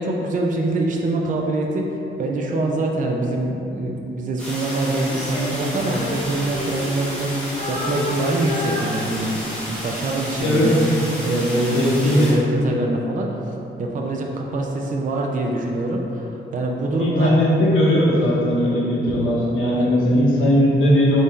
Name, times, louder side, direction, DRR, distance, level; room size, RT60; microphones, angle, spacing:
voice 1, 0.0-9.4 9.7-10.8 11.2-13.4 13.8-17.3 19.8-20.0, right 2 dB, 40° right, 0 dB, 0.4 m, -24 dB
sound 1, 4.4-12.3, equal, 5° left, 1.0 m, -32 dB
Female singing, 5.0-7.3 7.6-9.6 10.2-10.4, left 2 dB, 35° left, 0.9 m, -30 dB
voice 2, 10.4-10.8 11.7-12.3 17.0-21.2, equal, 70° left, -7 dB, 0.7 m, -18 dB
3.6 x 2.6 x 4.3 m, 2.9 s
wide cardioid pair, 120°, 21 cm